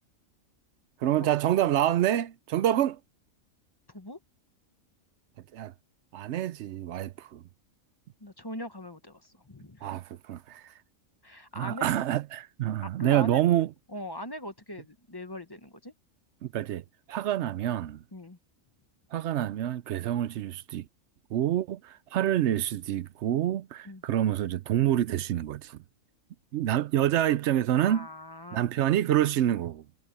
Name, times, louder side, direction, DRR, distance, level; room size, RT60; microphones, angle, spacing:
voice 1, 1.0-3.0 5.5-5.7 6.1-7.4 9.8-10.7 11.5-13.7 16.4-18.0 19.1-20.9 21.3-25.8 26.5-28.1 28.5-29.8, right 12 dB, 65° right, 0.8 m, -27 dB
voice 2, 3.9-4.2 8.2-9.9 11.2-11.9 12.8-13.4 13.9-15.9 18.1-18.4 23.8-24.0 27.7-28.6, left 1 dB, 20° left, 1.0 m, -41 dB
omnidirectional pair, 1.4 m